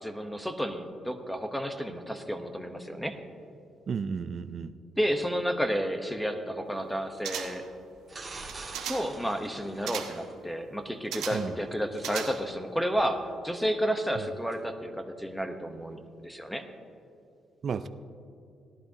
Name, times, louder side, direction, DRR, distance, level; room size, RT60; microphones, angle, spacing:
voice 1, 0.0-3.2 5.0-7.7 8.9-16.6, equal, 5° left, 6 dB, 1.1 m, -31 dB
voice 2, 3.9-4.7 11.3-11.6 14.1-14.3 17.6-17.9, right 6 dB, 50° right, 11 dB, 0.5 m, -33 dB
sound 1, 7.2-7.8 8.4-9.2 9.9-10.3 11.1-11.6 12.0-12.7 13.0-13.1, right 9 dB, 90° right, 1.0 m, -37 dB
sound 2, 8.1-10.3 14.5-14.6, right 3 dB, 25° right, 2.1 m, -44 dB
17.5 x 11.5 x 2.9 m, 2.5 s
cardioid pair, 90°, 0 cm